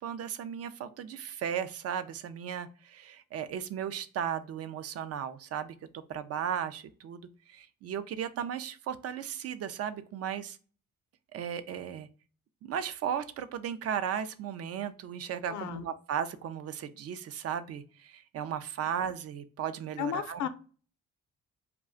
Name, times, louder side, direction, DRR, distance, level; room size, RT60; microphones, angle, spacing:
voice 1, 0.0-5.7 6.1-10.6 11.3-12.1 12.6-20.5, right 8 dB, 55° right, 11 dB, 0.4 m, -36 dB
voice 2, 15.5-15.9 20.0-20.5, left 8 dB, 70° left, 10 dB, 0.5 m, -33 dB
2.4 x 2.2 x 3.6 m, 0.38 s
cardioid pair, 90°, 30 cm